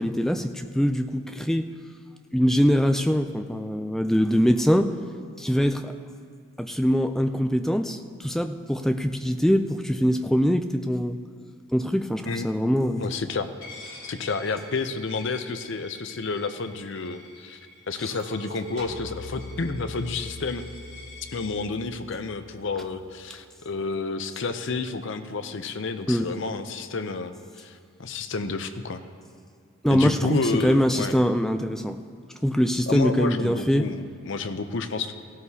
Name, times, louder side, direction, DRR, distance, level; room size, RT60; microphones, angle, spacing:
voice 1, 0.0-1.7 2.3-4.9 5.4-5.9 6.6-11.2 11.7-13.1 26.1-26.3 29.8-32.0 32.4-33.9, equal, ahead, 7 dB, 0.3 m, -23 dB
voice 2, 13.0-13.5 14.0-17.6 17.9-20.6 21.3-29.0 29.9-31.2 32.9-35.1, left 3 dB, 55° left, 9 dB, 0.6 m, -30 dB
Coin (dropping), 13.6-21.5, left 3 dB, 70° left, 3.0 m, -47 dB
Chink clink, 18.1-22.5 22.9-23.4, right 6 dB, 80° right, 1.8 m, -47 dB
sound 1, 18.8-23.2, left 3 dB, 50° right, 2.0 m, -43 dB
17.0 x 12.5 x 2.8 m, 2.1 s
head